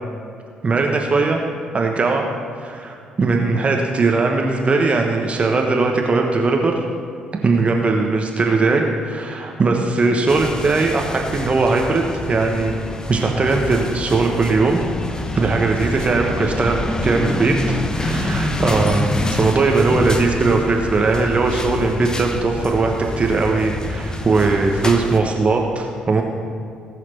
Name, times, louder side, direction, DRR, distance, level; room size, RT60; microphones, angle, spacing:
voice 1, 0.6-1.4 1.7-2.3 2.6-6.8 7.4-12.7 13.1-14.8 15.3-26.2, right 3 dB, 35° right, 2 dB, 1.3 m, -19 dB
sound 1, 10.3-25.2, left 1 dB, 20° left, 1.1 m, -26 dB
19.0 x 6.6 x 4.5 m, 2.4 s
figure-of-eight pair, 45°, 4 cm